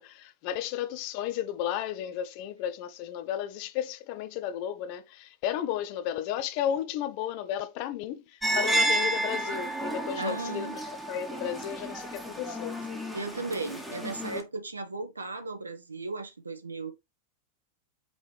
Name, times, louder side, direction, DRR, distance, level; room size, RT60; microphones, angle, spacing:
voice 1, 0.0-12.8, left 10 dB, 45° left, 0.5 m, -33 dB
sound 1, 8.4-14.4, right 1 dB, ahead, 1.1 m, -31 dB
voice 2, 10.2-10.8 13.1-16.9, right 3 dB, 80° right, 0.8 m, -36 dB
5.3 x 3.1 x 3.3 m
figure-of-eight pair, 90°, 0 cm